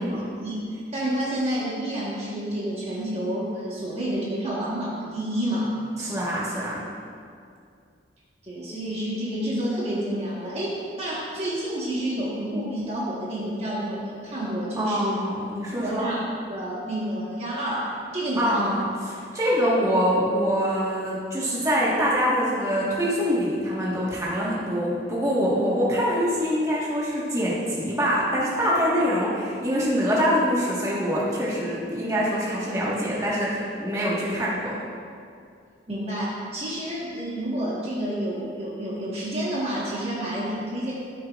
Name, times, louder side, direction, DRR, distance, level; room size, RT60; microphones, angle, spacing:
voice 1, 0.1-5.8 8.4-15.1 15.8-16.2 16.5-18.7 35.9-40.9, right 1 dB, 30° right, -7 dB, 1.4 m, -29 dB
voice 2, 6.0-6.8 14.8-16.1 18.4-18.8 19.1-34.8, equal, 15° right, -7 dB, 1.5 m, -24 dB
14.5 x 6.8 x 2.5 m, 2.3 s
head